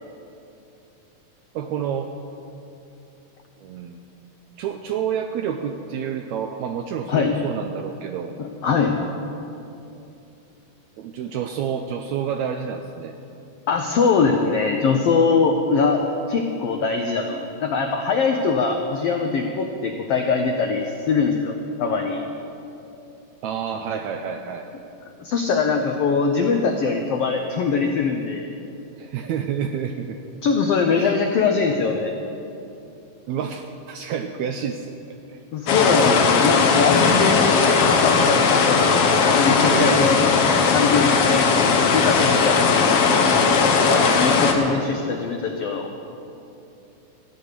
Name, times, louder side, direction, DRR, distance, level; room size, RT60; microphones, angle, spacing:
voice 1, 1.5-2.1 3.6-4.0 4.6-8.3 11.0-13.1 23.4-24.7 29.0-30.2 31.0-31.2 33.3-35.4 39.3-40.2 41.3-41.6, right 8 dB, 80° right, 5 dB, 1.6 m, -29 dB
voice 2, 8.4-8.9 13.7-16.0 16.3-22.2 25.2-28.5 30.4-32.2 35.5-38.9 39.4-40.3 40.7-42.9 43.7-45.9, left 5 dB, 85° left, 3 dB, 1.3 m, -22 dB
sound 1, 35.7-44.5, left 5 dB, 60° left, 1.6 m, -18 dB
14.5 x 9.7 x 6.7 m, 2.8 s
omnidirectional pair, 3.7 m